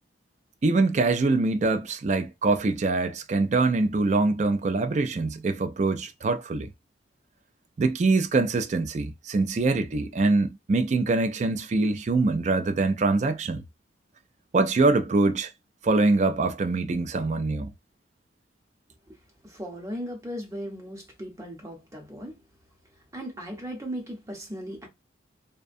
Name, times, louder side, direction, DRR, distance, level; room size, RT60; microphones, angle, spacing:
voice 1, 0.6-6.7 7.8-13.6 14.5-15.5 15.8-17.7, right 3 dB, 40° right, 0.3 m, -24 dB
voice 2, 19.4-22.4 23.1-24.9, equal, 15° right, 0.7 m, -37 dB
2.5 x 2.2 x 2.5 m
head